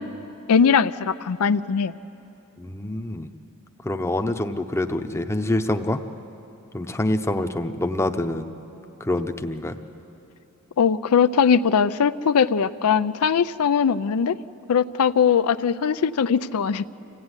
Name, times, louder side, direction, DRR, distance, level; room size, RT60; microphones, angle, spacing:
voice 1, 0.5-1.9 10.8-14.3 14.7-16.8, left 6 dB, 75° left, 13 dB, 0.5 m, -20 dB
voice 2, 2.6-3.3 3.8-6.0 6.7-8.5 9.0-9.7, left 1 dB, 10° left, 6 dB, 0.7 m, -26 dB
25.5 x 15.5 x 9.7 m, 3.0 s
head